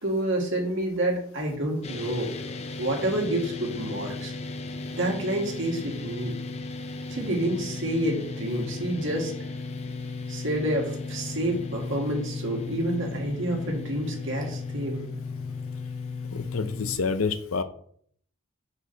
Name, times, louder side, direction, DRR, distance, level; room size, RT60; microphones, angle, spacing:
voice 1, 0.0-2.3 2.8-4.3 4.9-6.4 7.1-9.3 10.3-15.1, right 1 dB, 60° right, 0 dB, 2.0 m, -28 dB
sound 1, 1.8-17.0, left 3 dB, 30° left, 0.5 m, -35 dB
voice 2, 16.3-17.6, left 4 dB, 75° left, 10 dB, 0.6 m, -28 dB
6.2 x 4.8 x 4.0 m, 0.62 s
head